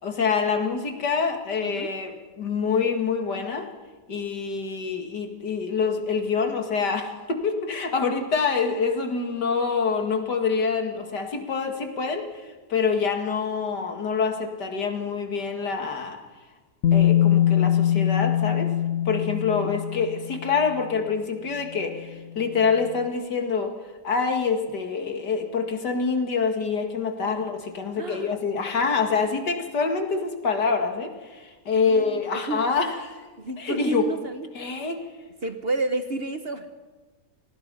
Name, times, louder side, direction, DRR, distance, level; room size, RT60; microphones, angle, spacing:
voice 1, 0.0-3.7 4.1-16.2 16.9-18.7 19.1-23.7 24.0-33.2 33.6-34.1 34.5-35.1, left 5 dB, 75° left, 5 dB, 2.7 m, -26 dB
Bass guitar, 16.8-20.8 21.9-22.0, left 11 dB, 60° left, 1.1 m, -22 dB
voice 2, 27.9-28.4 31.8-32.2 32.5-32.6 33.4-34.5 35.4-36.7, right 3 dB, 40° right, 8 dB, 1.1 m, -30 dB
27.5 x 18.5 x 5.5 m, 1.3 s
omnidirectional pair, 1.8 m